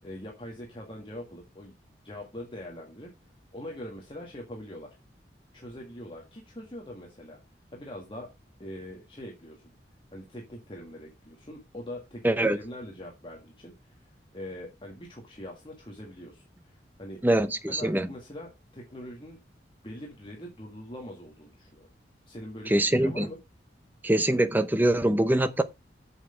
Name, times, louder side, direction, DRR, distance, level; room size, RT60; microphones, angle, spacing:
voice 1, 0.0-1.7 2.0-3.1 3.5-5.0 5.5-7.4 7.7-8.3 8.6-9.6 10.1-12.2 12.5-17.2 17.7-19.4 19.8-21.9 22.3-23.4, left 1 dB, 30° left, 1.9 m, -43 dB
voice 2, 12.2-12.6 17.2-18.1 22.7-23.3 24.0-25.6, right 1 dB, 10° right, 0.7 m, -23 dB
7.8 x 6.6 x 5.0 m
head